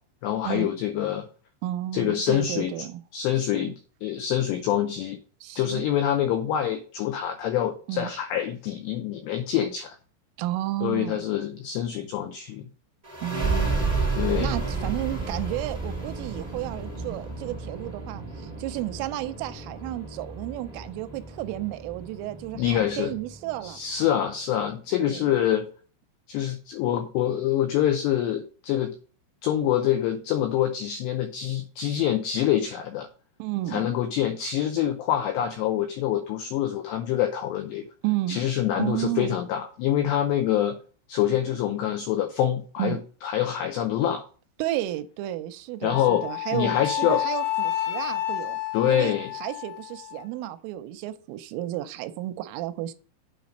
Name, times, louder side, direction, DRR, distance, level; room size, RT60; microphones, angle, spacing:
voice 1, 0.2-1.3 1.9-2.7 3.1-3.7 4.0-5.2 5.6-10.0 10.8-12.6 14.2-14.5 22.6-23.1 23.6-25.7 26.3-28.9 29.4-33.1 33.7-37.8 38.3-40.8 41.1-44.2 45.8-47.2 48.7-49.3, left 11 dB, 90° left, 2.4 m, -26 dB
voice 2, 1.6-3.0 3.4-3.7 5.4-5.9 7.9-8.1 10.4-11.2 13.2-13.9 14.4-23.8 25.0-25.4 33.4-33.9 38.0-38.4 38.8-39.4 42.8-43.0 44.6-52.9, right 15 dB, 85° right, 3.1 m, -32 dB
sound 1, 13.0-24.3, right 4 dB, 50° right, 0.5 m, -32 dB
Wind instrument woodwind instrument, 45.9-50.3, left 14 dB, 70° left, 2.5 m, -30 dB
8.4 x 5.1 x 5.3 m
omnidirectional pair, 5.8 m